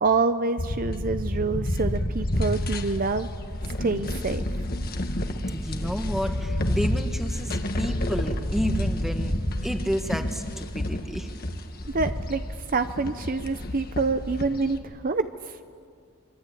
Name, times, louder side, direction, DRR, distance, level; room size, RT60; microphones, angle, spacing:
voice 1, 0.0-3.3 3.8-4.4 11.8-12.4 12.7-15.6, right 3 dB, 40° right, 10 dB, 0.6 m, -26 dB
sound 1, 0.6-14.8, left 1 dB, 45° left, 1.6 m, -29 dB
voice 2, 5.5-9.3 9.6-11.3, equal, ahead, 5 dB, 1.5 m, -30 dB
25.0 x 24.0 x 8.5 m, 2.1 s
head